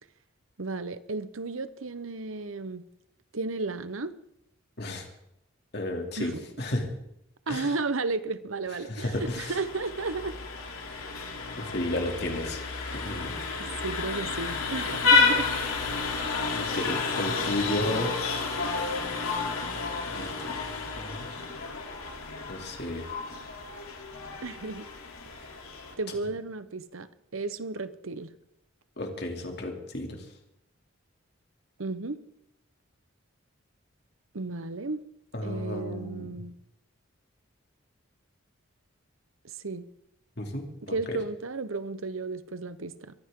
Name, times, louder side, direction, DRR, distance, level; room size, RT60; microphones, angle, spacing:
voice 1, 0.6-2.8 3.3-4.1 6.2-6.4 7.5-10.4 10.9-11.0 13.6-15.5 24.4-24.9 26.0-28.3 31.8-32.2 34.3-35.0 35.4-36.6 39.4-39.8 40.8-43.1, right 3 dB, 75° right, 13 dB, 1.0 m, -33 dB
voice 2, 5.7-6.9 7.5-7.7 8.8-9.5 11.6-12.6 12.9-13.4 16.5-18.1 20.1-20.6 21.0-21.3 22.5-23.1 29.0-30.2 35.3-36.4 40.4-41.2, left 1 dB, 50° left, 2 dB, 2.9 m, -33 dB
Vehicle horn car horn honking, 9.1-25.9, left 4 dB, 90° left, 3.3 m, -30 dB
22.5 x 14.5 x 3.8 m, 0.80 s
head